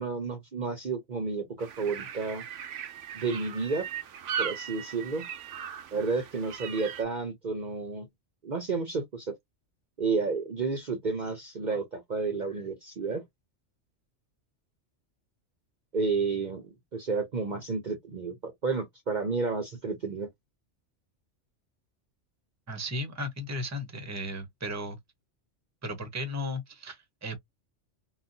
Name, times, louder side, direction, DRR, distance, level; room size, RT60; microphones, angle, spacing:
voice 1, 0.0-2.4 3.1-3.9 4.4-5.2 5.9-8.1 8.4-9.3 10.0-13.2 15.9-20.3, right 4 dB, 45° right, 0.8 m, -31 dB
sound 1, 1.6-7.0, right 8 dB, 80° right, 1.0 m, -38 dB
voice 2, 22.7-25.0 25.8-27.4, left 1 dB, 15° right, 0.8 m, -35 dB
3.8 x 2.3 x 2.7 m
omnidirectional pair, 1.3 m